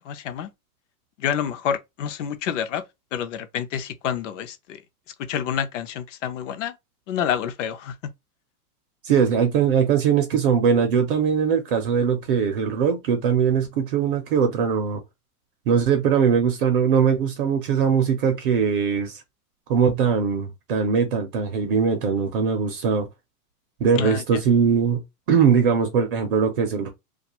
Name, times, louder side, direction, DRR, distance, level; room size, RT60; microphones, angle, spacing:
voice 1, 0.1-0.5 1.2-2.8 3.1-4.8 5.3-6.7 7.1-8.0 24.0-24.4, left 8 dB, 55° left, 0.6 m, -28 dB
voice 2, 9.0-15.0 15.7-19.2 19.7-23.1 23.8-25.0 25.3-26.9, right 7 dB, 40° right, 0.4 m, -21 dB
2.3 x 2.3 x 2.8 m
supercardioid pair, 150°, 45 cm